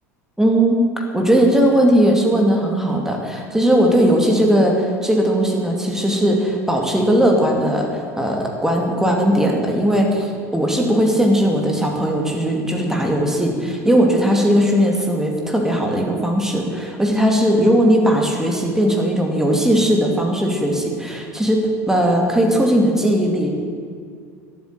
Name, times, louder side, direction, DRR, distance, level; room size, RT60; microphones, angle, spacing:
voice 1, 0.4-0.8 1.1-23.5, equal, 5° right, 1 dB, 2.4 m, -18 dB
12.0 x 8.2 x 9.3 m, 2.2 s
figure-of-eight pair, 75°, 8 cm